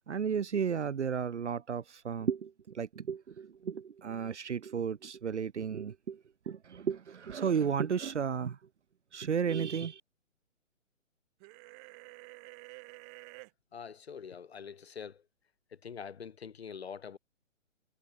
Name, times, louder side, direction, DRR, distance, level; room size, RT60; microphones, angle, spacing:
voice 1, 0.1-8.6 9.1-10.0, right 7 dB, 60° right, 0.8 m, -33 dB
sound 1, 11.4-13.5, right 36 dB, 20° right, 2.7 m, -50 dB
voice 2, 13.7-15.3 15.7-17.2, left 7 dB, 50° left, 7.6 m, -44 dB
figure-of-eight pair, 135°, 39 cm